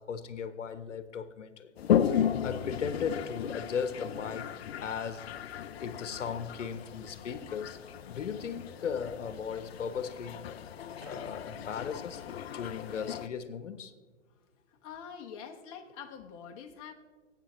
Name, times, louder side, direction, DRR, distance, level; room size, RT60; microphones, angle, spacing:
voice 1, 0.0-1.7 2.4-4.5 4.8-5.3 5.8-7.8 8.1-10.4 11.0-12.2 12.5-13.9, left 6 dB, 75° left, 1.0 m, -37 dB
Toilet flush, 1.8-13.3, left 9 dB, 55° left, 0.6 m, -35 dB
sound 1, 2.6-12.0, left 2 dB, ahead, 0.3 m, -59 dB
voice 2, 14.7-16.9, left 7 dB, 30° left, 1.0 m, -45 dB
19.0 x 8.5 x 3.1 m
hypercardioid pair, 140°, 37 cm